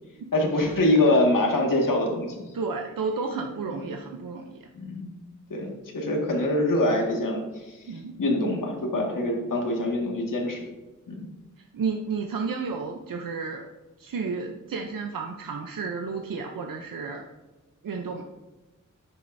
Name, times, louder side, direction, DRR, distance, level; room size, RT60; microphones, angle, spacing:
voice 1, 0.3-2.5 4.7-5.1 5.5-7.8 8.2-10.6 11.1-11.3, left 1 dB, 75° left, -1 dB, 1.9 m, -24 dB
voice 2, 2.5-4.7 7.9-8.1 11.7-13.7 14.0-17.3 17.8-18.2, right 4 dB, 85° right, 2 dB, 0.7 m, -32 dB
10.0 x 8.5 x 2.7 m, 1.1 s
wide cardioid pair, 85°, 32 cm